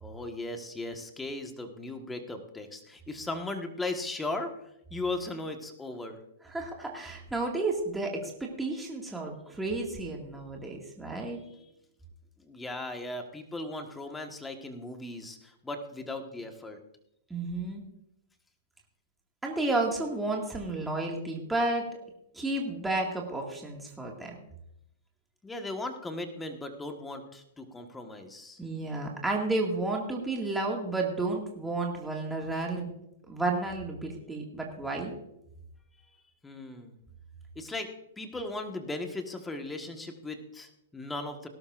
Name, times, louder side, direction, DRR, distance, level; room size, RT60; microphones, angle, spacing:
voice 1, 0.0-4.5 4.9-6.2 11.1-11.5 12.4-16.8 25.4-28.6 36.4-37.0 37.5-41.5, left 2 dB, 10° left, 5 dB, 1.5 m, -37 dB
voice 2, 6.5-8.3 8.6-11.4 17.3-17.8 19.4-21.9 22.3-24.3 28.6-32.9 33.3-35.1, right 2 dB, 5° right, -1 dB, 2.1 m, -31 dB
18.0 x 12.0 x 2.6 m, 0.82 s
hypercardioid pair, 135°, 0 cm